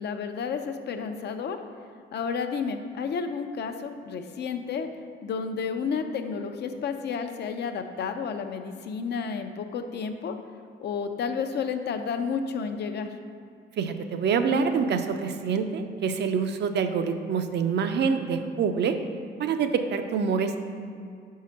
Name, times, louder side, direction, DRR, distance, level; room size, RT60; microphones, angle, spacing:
voice 1, 0.0-1.6 2.1-4.9 5.2-10.4 10.8-13.1, left 5 dB, 60° left, 7 dB, 0.6 m, -31 dB
voice 2, 13.8-19.0 19.4-20.6, right 6 dB, 60° right, 8 dB, 0.5 m, -26 dB
5.0 x 4.7 x 5.7 m, 2.3 s
cardioid pair, 90°, 20 cm